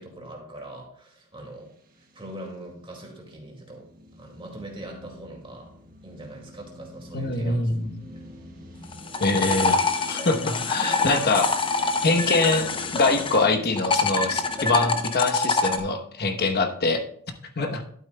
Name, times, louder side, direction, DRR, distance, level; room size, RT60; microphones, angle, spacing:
voice 1, 0.0-3.9 4.2-5.7 6.0-7.6 11.0-11.2 17.6-17.7, right 1 dB, 25° right, 0 dB, 2.1 m, -41 dB
sound 1, 1.7-15.0, left 1 dB, 40° right, 1.4 m, -44 dB
voice 2, 7.1-7.9 9.2-9.8 10.1-11.5 12.0-17.0 17.6-17.7, left 3 dB, 45° left, 6 dB, 1.0 m, -24 dB
sound 2, 8.8-13.4 13.8-15.8, left 3 dB, 25° left, 0.6 m, -25 dB
12.0 x 8.6 x 2.2 m, 0.62 s
head